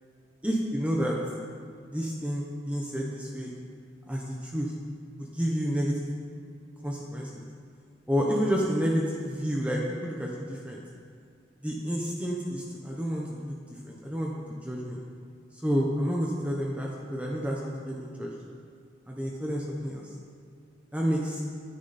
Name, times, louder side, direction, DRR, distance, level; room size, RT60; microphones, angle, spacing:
voice 1, 0.4-1.2 1.9-3.5 4.1-4.7 5.2-6.0 6.8-7.5 8.1-10.8 11.6-13.6 13.8-15.0 15.6-18.3 19.1-20.1 20.9-21.4, equal, 5° right, -2 dB, 0.9 m, -30 dB
14.5 x 10.0 x 4.2 m, 2.2 s
head